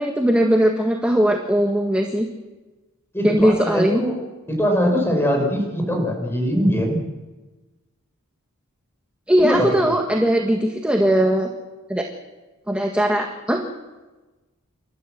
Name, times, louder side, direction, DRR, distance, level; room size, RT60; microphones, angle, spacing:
voice 1, 0.0-2.3 3.2-4.0 9.3-11.5 11.9-12.0 12.7-13.6, right 1 dB, 5° right, 1 dB, 1.6 m, -19 dB
voice 2, 3.1-4.2 4.5-7.0 9.4-9.9, equal, 10° left, 2 dB, 5.2 m, -22 dB
28.5 x 13.5 x 7.6 m, 1.2 s
head